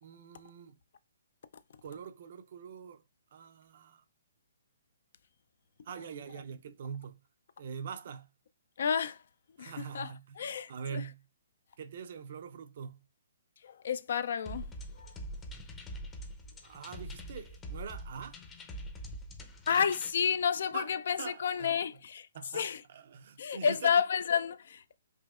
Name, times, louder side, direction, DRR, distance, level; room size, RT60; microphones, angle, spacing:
voice 1, 0.0-0.8 1.8-3.0 3.3-4.0 5.8-7.2 7.6-8.3 9.6-11.2 11.8-13.0 16.6-18.4 20.7-20.9 21.2-21.7 22.3-23.9, right 6 dB, 55° right, 0.5 m, -44 dB
voice 2, 8.8-9.2 9.6-11.0 13.6-14.7 14.9-15.2 19.7-22.3 22.5-22.8 23.4-25.0, left 7 dB, 65° left, 0.3 m, -31 dB
sound 1, 14.5-20.1, equal, 15° left, 0.6 m, -44 dB
4.9 x 2.7 x 2.3 m
hypercardioid pair, 150°, 0 cm